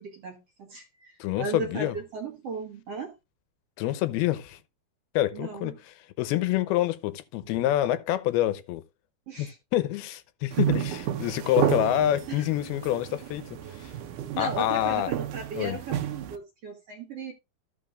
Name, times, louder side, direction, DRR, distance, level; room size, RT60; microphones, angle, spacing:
voice 1, 0.0-3.2 5.3-5.7 9.3-9.6 12.3-12.5 14.3-17.3, right 4 dB, 60° right, 1.8 m, -36 dB
voice 2, 1.2-2.0 3.8-4.6 5.2-5.7 6.2-8.8 9.4-13.9 14.4-15.1 15.6-15.8, left 13 dB, 85° left, 2.7 m, -27 dB
sound 1, 10.5-16.4, right 10 dB, 75° right, 2.0 m, -31 dB
14.5 x 6.0 x 2.4 m
omnidirectional pair, 4.4 m